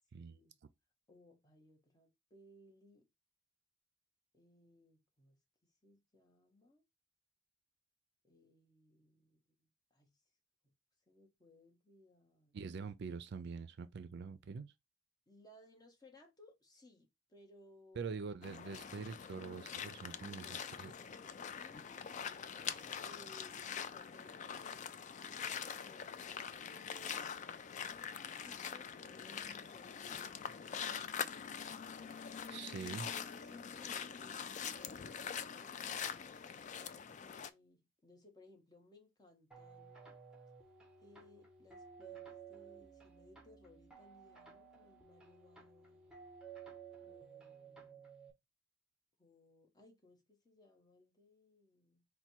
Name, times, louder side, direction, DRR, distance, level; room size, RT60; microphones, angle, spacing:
voice 1, 0.1-0.6 1.1-3.1 4.3-5.4 5.8-6.8 8.2-9.4 9.9-10.2 11.1-12.6 15.3-18.4 20.2-22.4 23.0-27.6 28.4-36.6 37.1-40.2 41.0-46.2 47.0-48.1 49.2-52.0, left 2 dB, 20° left, 1.1 m, -63 dB
voice 2, 12.5-14.7 17.9-20.9 32.5-33.1, right 5 dB, 60° right, 0.4 m, -45 dB
sound 1, 18.4-37.5, left 7 dB, 40° left, 0.3 m, -44 dB
sound 2, 39.5-48.3, right 6 dB, 5° right, 1.1 m, -55 dB
4.2 x 2.2 x 4.4 m
head